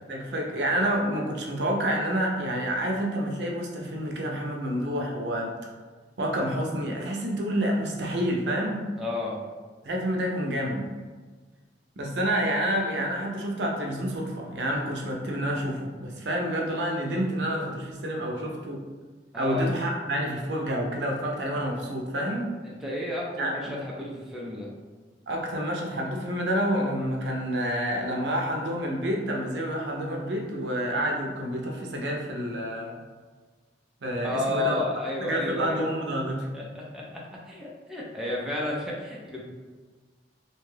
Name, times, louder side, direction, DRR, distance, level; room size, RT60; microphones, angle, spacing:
voice 1, 0.1-5.5 6.2-8.8 9.8-10.8 12.0-18.8 19.3-22.5 23.4-23.8 25.3-33.0 34.0-34.8 35.2-36.5, equal, 75° right, 0 dB, 0.6 m, -28 dB
voice 2, 9.0-9.4 19.3-19.7 22.6-24.7 34.2-35.8 36.5-39.4, left 2 dB, 5° right, -5 dB, 0.5 m, -32 dB
2.6 x 2.3 x 3.2 m, 1.4 s
head